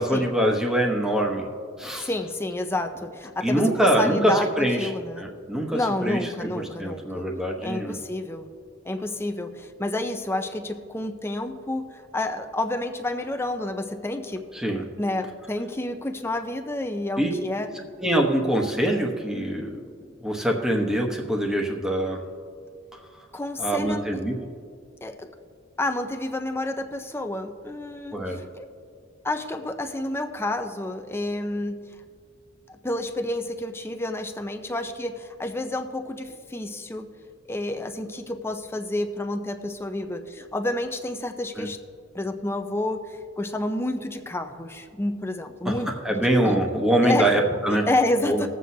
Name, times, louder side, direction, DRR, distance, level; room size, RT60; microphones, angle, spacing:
voice 1, 0.0-1.5 1.8-2.1 3.4-4.9 5.2-8.0 14.5-14.8 17.2-17.3 18.0-22.2 22.9-23.0 23.6-24.4 28.1-28.4 41.6-41.7 46.0-47.9 48.2-48.5, right 1 dB, 5° right, 0 dB, 1.0 m, -24 dB
voice 2, 1.9-5.3 5.7-7.3 7.6-8.5 8.8-14.4 15.0-17.7 23.3-24.1 25.0-25.3 25.8-28.7 29.2-31.8 32.7-37.1 37.5-41.8 42.1-46.6 47.0-47.3 47.7-48.5, left 1 dB, 10° left, 6 dB, 0.6 m, -29 dB
20.5 x 7.7 x 2.8 m, 2.2 s
head